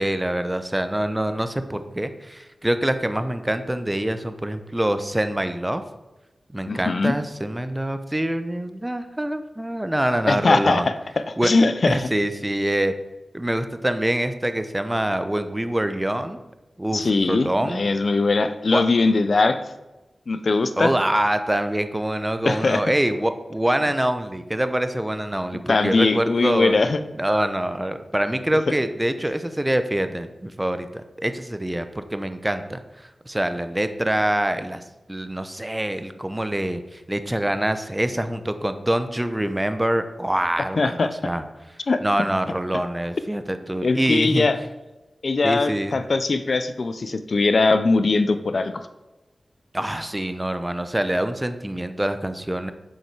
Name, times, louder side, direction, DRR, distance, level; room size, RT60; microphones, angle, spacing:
voice 1, 0.0-5.8 6.5-10.9 11.4-11.5 11.9-12.9 13.3-16.4 16.8-17.8 18.7-18.8 20.8-26.7 27.2-41.4 42.0-44.5 45.4-46.0 49.7-52.7, right 1 dB, 15° right, 10 dB, 0.7 m, -25 dB
voice 2, 6.7-7.2 10.3-10.9 11.3-12.1 16.9-19.6 20.3-20.9 22.4-22.8 25.7-27.0 40.8-41.1 41.9-42.0 43.8-44.6 45.2-48.7, left 3 dB, 65° left, 11 dB, 0.5 m, -20 dB
7.4 x 5.5 x 4.7 m, 1.0 s
cardioid pair, 50°, 0 cm